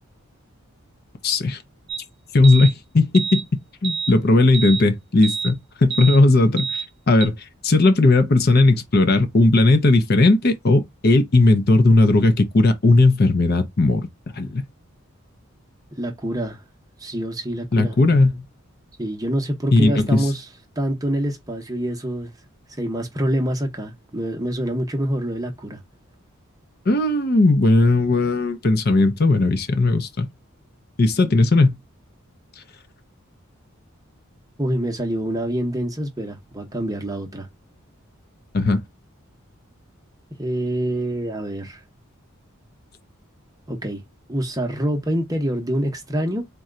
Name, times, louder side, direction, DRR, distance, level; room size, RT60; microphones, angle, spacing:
voice 1, 1.2-1.6 2.3-7.3 7.6-14.1 14.3-14.6 17.7-18.4 19.7-20.3 26.9-30.3 31.0-31.8 38.5-38.8, left 2 dB, 45° left, 0.6 m, -17 dB
sound 1, 1.9-2.0 2.4-2.7 3.1-3.4 3.8-4.1 4.5-4.8 5.2-5.5 5.9-6.2 6.6-6.9 7.2-7.3, right 6 dB, 50° right, 0.7 m, -27 dB
voice 2, 15.9-16.6 17.0-18.0 19.0-20.5 20.8-22.3 22.7-25.8 34.6-37.5 40.4-41.8 43.7-44.0 44.3-46.5, right 1 dB, 15° right, 0.8 m, -26 dB
4.2 x 2.2 x 3.7 m
head